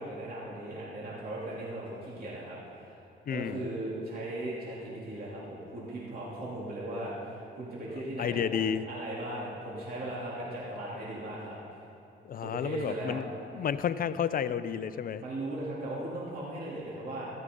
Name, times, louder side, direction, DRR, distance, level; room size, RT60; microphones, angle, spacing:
voice 1, 0.0-3.0 3.3-11.5 12.4-13.2 15.2-17.3, right 1 dB, 50° right, -7 dB, 3.1 m, -38 dB
voice 2, 3.3-3.6 8.2-8.8 12.3-13.3 13.5-15.2, left 8 dB, 45° left, 13 dB, 0.6 m, -31 dB
15.0 x 12.5 x 3.9 m, 2.9 s
cardioid pair, 90°, 20 cm